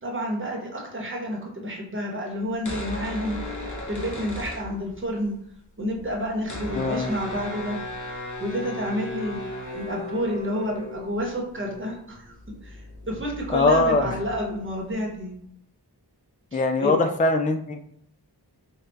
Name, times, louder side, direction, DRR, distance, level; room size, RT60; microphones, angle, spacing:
voice 1, 0.0-3.4 3.9-5.3 5.8-7.8 8.4-9.4 9.7-12.3 12.6-15.3 16.5-17.0, equal, 30° right, 0 dB, 1.0 m, -30 dB
sound 1, 2.5-5.2 5.5-5.6 5.8-15.2, left 1 dB, 45° left, 0.9 m, -36 dB
voice 2, 6.7-7.1 13.5-14.2 16.5-17.8, left 3 dB, 20° left, 6 dB, 0.4 m, -22 dB
3.4 x 2.3 x 3.9 m, 0.69 s
wide cardioid pair, 45°, 41 cm